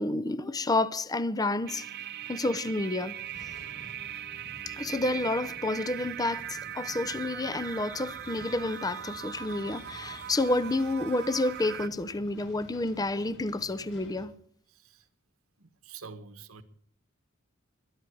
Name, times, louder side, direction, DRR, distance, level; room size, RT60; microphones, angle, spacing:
voice 1, 0.0-1.8 2.3-3.2 4.7-14.3, left 2 dB, 20° left, 0.6 m, -30 dB
sound 1, 1.7-11.9, right 11 dB, 50° right, 0.5 m, -40 dB
sound 2, 3.2-14.2, equal, 60° left, 4.7 m, -52 dB
voice 2, 14.7-15.1 15.6-16.6, right 5 dB, 85° right, 1.4 m, -47 dB
21.5 x 10.5 x 4.7 m
head